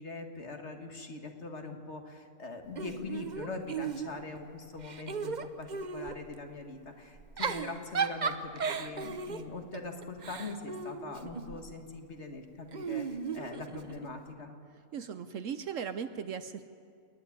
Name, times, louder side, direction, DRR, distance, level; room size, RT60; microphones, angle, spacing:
voice 1, 0.0-8.5 8.8-14.6, left 3 dB, 45° left, 4 dB, 2.0 m, -42 dB
Giggle / Chuckle chortle, 2.8-4.4 4.8-6.2 7.2-11.6 12.7-14.1, right 5 dB, 40° right, 0.7 m, -36 dB
voice 2, 14.9-16.7, right 7 dB, 60° right, 11 dB, 1.0 m, -37 dB
28.0 x 10.0 x 9.6 m, 2.3 s
omnidirectional pair, 1.6 m